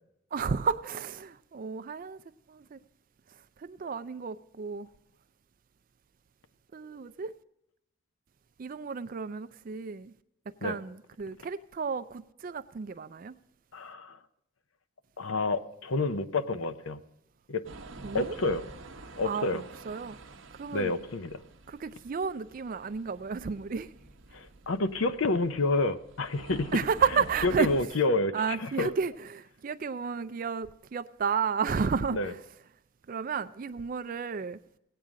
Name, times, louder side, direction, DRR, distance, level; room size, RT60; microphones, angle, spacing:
voice 1, 0.3-2.2 2.5-2.8 3.6-4.9 6.7-7.3 8.6-10.1 10.6-13.3 18.0-18.4 19.2-20.2 20.6-20.9 21.7-23.9 26.7-27.7 28.3-32.4 33.1-34.6, right 6 dB, 40° right, 12 dB, 0.4 m, -32 dB
voice 2, 13.7-14.2 15.2-17.0 17.5-17.6 18.1-18.6 19.2-19.6 20.7-21.4 24.3-26.8 27.4-28.9 32.1-32.3, left 2 dB, 75° left, 11 dB, 0.7 m, -29 dB
sound 1, 17.6-27.9, right 2 dB, 65° right, 0.9 m, -48 dB
17.0 x 8.9 x 3.7 m, 0.81 s
head